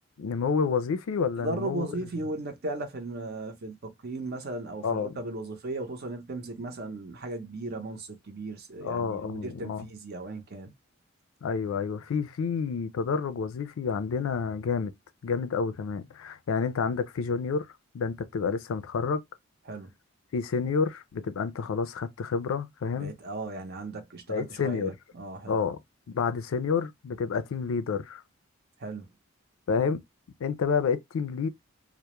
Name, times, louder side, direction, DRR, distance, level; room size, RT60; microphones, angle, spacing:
voice 1, 0.2-2.1 4.8-5.1 8.8-9.8 11.4-14.9 15.2-17.7 17.9-19.2 20.3-23.1 24.3-24.9 25.5-25.8 26.1-28.2 29.7-30.0 30.4-31.5, left 5 dB, 75° left, 0.4 m, -29 dB
voice 2, 1.4-10.7 19.7-19.9 22.9-25.6 28.8-29.1, right 2 dB, 50° right, 0.6 m, -36 dB
2.2 x 2.0 x 2.8 m
head